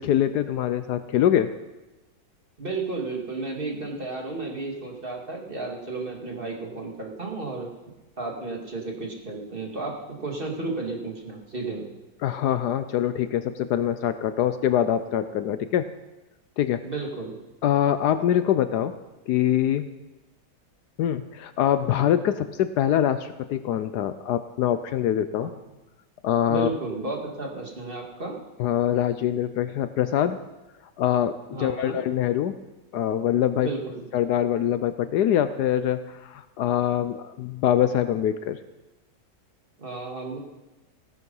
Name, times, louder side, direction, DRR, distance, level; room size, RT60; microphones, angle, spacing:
voice 1, 0.0-1.5 12.2-15.9 16.6-16.8 17.6-18.9 19.3-19.9 21.0-25.5 26.2-26.7 28.6-30.4 31.0-32.5 32.9-33.7 34.1-38.6, left 10 dB, 70° left, 11 dB, 1.1 m, -24 dB
voice 2, 2.6-7.7 8.2-11.8 16.8-17.3 25.4-25.6 26.5-28.3 31.5-32.0 33.6-34.0 39.8-40.4, right 3 dB, 30° right, 0 dB, 2.3 m, -33 dB
16.5 x 11.0 x 5.5 m, 1.1 s
omnidirectional pair, 1.9 m